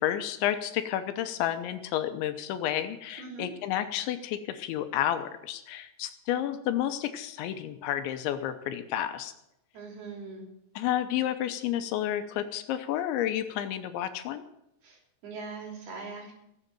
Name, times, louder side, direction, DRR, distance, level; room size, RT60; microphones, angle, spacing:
voice 1, 0.0-9.3 10.8-14.4, left 11 dB, 85° left, 9 dB, 3.1 m, -31 dB
voice 2, 9.7-10.5 14.8-16.3, right 4 dB, 60° right, 0 dB, 4.8 m, -41 dB
17.5 x 7.6 x 7.6 m, 0.82 s
omnidirectional pair, 5.4 m